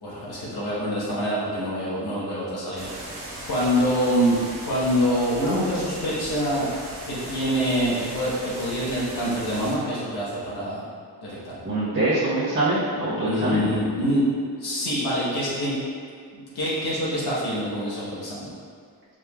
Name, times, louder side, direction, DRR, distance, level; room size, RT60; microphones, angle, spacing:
voice 1, 0.0-3.2 3.5-6.7 7.1-10.8 11.2-11.7 13.2-14.2 14.6-15.7 16.3-18.5, equal, 70° left, -8 dB, 1.2 m, -25 dB
sound 1, 2.8-9.8, right 1 dB, 80° right, 1.5 m, -38 dB
voice 2, 11.6-13.7, right 2 dB, 30° right, -11 dB, 1.0 m, -24 dB
4.9 x 3.6 x 2.3 m, 2.2 s
wide cardioid pair, 105°, 40 cm